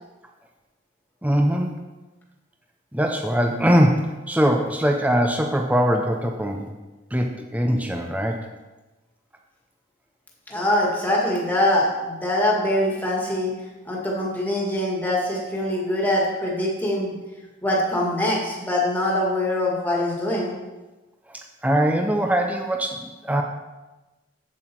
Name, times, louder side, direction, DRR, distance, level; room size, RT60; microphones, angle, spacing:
voice 1, 1.2-1.8 2.9-6.7 7.1-8.4 21.3-23.4, equal, 10° right, 3 dB, 0.6 m, -22 dB
voice 2, 10.5-13.5 13.8-17.1 17.6-20.5, left 1 dB, 10° left, -3 dB, 1.9 m, -23 dB
8.2 x 7.6 x 4.6 m, 1.1 s
head